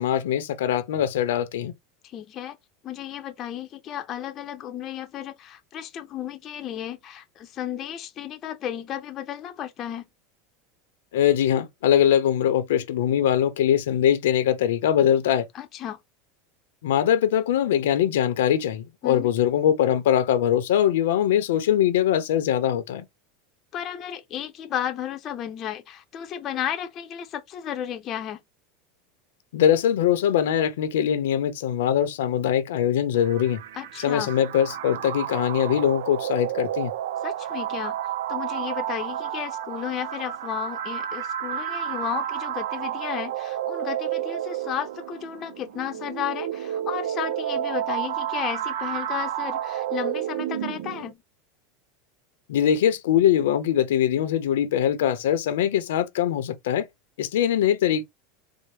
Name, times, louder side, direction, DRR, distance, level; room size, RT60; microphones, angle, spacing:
voice 1, 0.0-1.7 11.1-15.5 16.8-23.1 29.5-33.6 34.0-36.9 52.5-56.9 57.2-58.0, left 10 dB, 90° left, 0.7 m, -22 dB
voice 2, 2.0-2.6 2.8-10.1 15.5-16.0 19.0-19.3 23.7-28.4 33.7-34.3 37.2-38.0 38.3-51.2, left 10 dB, 35° left, 0.6 m, -33 dB
sound 1, 33.1-51.1, right 11 dB, 85° right, 0.4 m, -31 dB
4.2 x 2.0 x 3.3 m
supercardioid pair, 140°, 0 cm